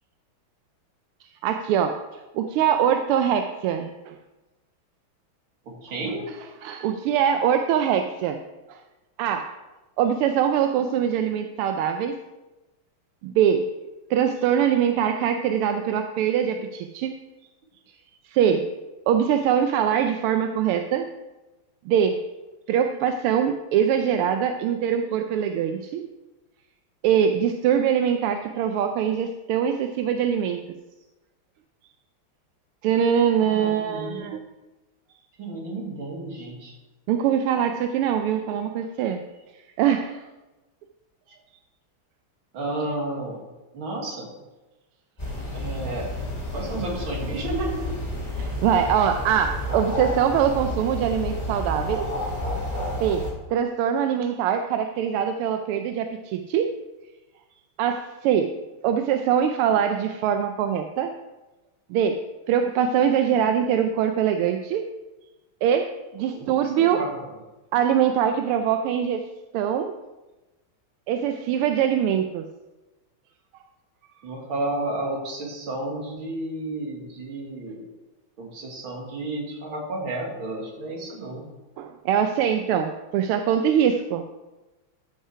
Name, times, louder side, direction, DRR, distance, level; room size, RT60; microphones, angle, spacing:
voice 1, 1.4-2.0 2.3-4.2 6.6-8.4 8.7-8.8 9.2-9.5 10.0-12.2 13.2-13.7 14.1-17.1 18.2-18.7 19.1-21.1 21.9-22.2 22.7-26.1 27.0-30.6 32.8-34.4 37.1-39.2 39.8-40.2 48.4-52.1 53.0-56.7 57.8-58.5 58.8-61.1 61.9-62.2 62.5-64.9 65.6-67.0 67.7-69.2 69.5-69.9 71.1-72.5 81.8-84.2, right 8 dB, 85° right, 6 dB, 1.5 m, -23 dB
voice 2, 5.7-6.3 33.5-34.3 35.4-36.7 42.5-43.4 43.7-44.3 45.5-46.1 46.5-47.9 66.3-66.5 66.8-67.3 74.2-77.8 78.4-81.5, right 2 dB, 70° right, 0 dB, 2.8 m, -32 dB
sound 1, 45.2-53.3, left 1 dB, 20° left, 2.2 m, -30 dB
13.5 x 5.6 x 4.8 m, 1.1 s
omnidirectional pair, 2.4 m